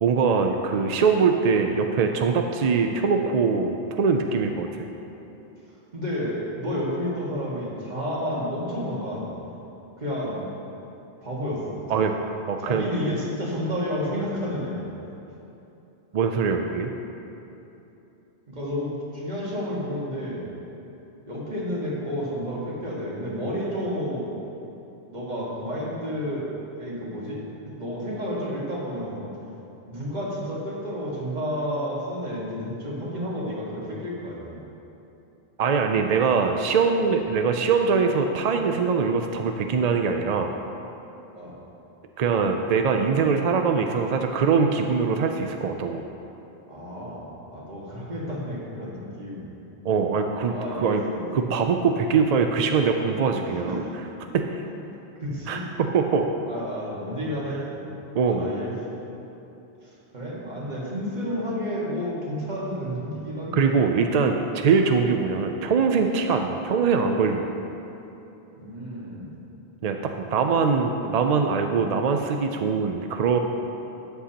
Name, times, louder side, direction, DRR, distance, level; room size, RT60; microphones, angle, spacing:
voice 1, 0.0-4.9 11.9-12.2 12.5-12.9 16.1-16.9 35.6-40.5 42.2-46.0 49.8-51.0 51.3-53.8 54.3-54.5 55.5-56.3 58.1-58.5 63.5-67.5 69.8-73.4, right 5 dB, 60° right, 4 dB, 0.4 m, -22 dB
voice 2, 5.9-9.3 10.0-10.4 11.2-12.2 12.7-14.8 18.5-20.5 21.3-24.3 25.1-26.5 26.8-29.3 29.9-34.6 37.0-37.1 38.5-38.6 41.3-41.6 46.7-49.4 50.5-51.3 53.6-53.9 55.2-55.6 56.5-57.8 58.3-58.7 60.1-63.5 68.6-69.3, equal, 40° right, -6 dB, 1.9 m, -31 dB
13.0 x 8.0 x 2.9 m, 3.0 s
omnidirectional pair, 1.1 m